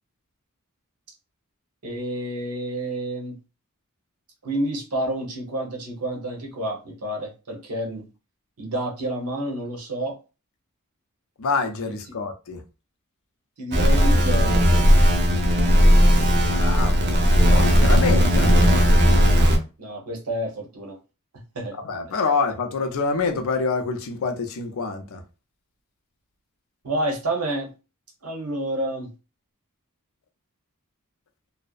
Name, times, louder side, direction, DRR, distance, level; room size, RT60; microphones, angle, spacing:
voice 1, 1.8-3.4 4.4-8.0 8.6-10.1 11.8-12.0 13.6-14.7 19.8-21.0 21.5-21.7 26.8-27.7 28.2-29.1, right 1 dB, 85° right, 0.9 m, -29 dB
voice 2, 11.4-12.6 16.4-19.0 21.9-25.2, left 4 dB, 65° left, 0.5 m, -27 dB
sound 1, 13.7-19.6, equal, 50° right, 0.6 m, -16 dB
2.6 x 2.0 x 2.3 m
head